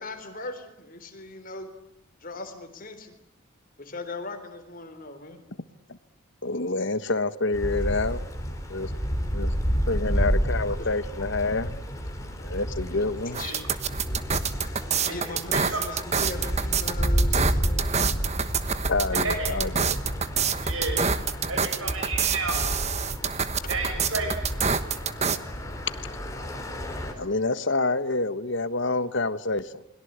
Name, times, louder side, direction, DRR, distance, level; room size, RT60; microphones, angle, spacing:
voice 1, 0.0-1.7 2.2-3.1 3.8-5.4 10.7-10.9 13.3-13.7 14.4-18.0 21.4-21.6 22.3-22.4 23.3-23.4 23.6-23.8 24.8-25.0, left 2 dB, 40° left, 8 dB, 3.9 m, -39 dB
voice 2, 6.4-8.2 8.7-8.9 9.3-9.5 9.9-11.7 12.4-13.4 18.9-20.0 27.2-29.8, left 3 dB, 55° left, 13 dB, 1.4 m, -27 dB
sound 1, 7.5-27.1, equal, 15° left, 4.4 m, -30 dB
sound 2, 13.3-25.4, right 6 dB, 30° right, 1.2 m, -26 dB
voice 3, 15.0-15.8 19.2-19.5 20.6-21.0 21.5-22.6 23.7-24.3, right 3 dB, 75° right, 3 dB, 7.1 m, -31 dB
29.0 x 22.0 x 8.2 m, 0.80 s
head